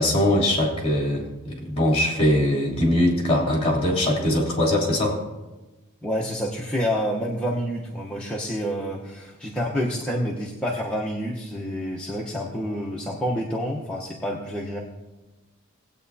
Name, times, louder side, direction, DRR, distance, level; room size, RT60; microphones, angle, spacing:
voice 1, 0.0-5.2, left 1 dB, 30° left, -2 dB, 3.1 m, -22 dB
voice 2, 6.0-14.8, equal, 5° left, -5 dB, 0.9 m, -28 dB
19.0 x 8.6 x 2.8 m, 1.1 s
head